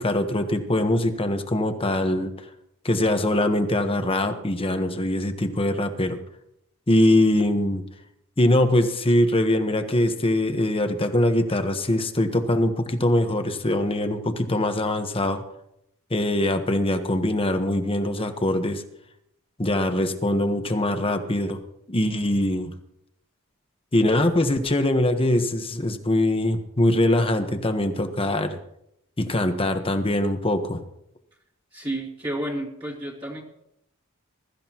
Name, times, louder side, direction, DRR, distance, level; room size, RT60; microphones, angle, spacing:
voice 1, 0.0-2.3 2.8-6.2 6.9-7.8 8.4-15.4 16.1-18.8 19.6-21.6 21.9-22.7 23.9-28.6 29.2-30.8, left 1 dB, 25° left, 7 dB, 1.2 m, -22 dB
voice 2, 31.7-33.4, right 1 dB, 25° right, -6 dB, 2.3 m, -31 dB
21.5 x 13.5 x 3.0 m, 0.79 s
head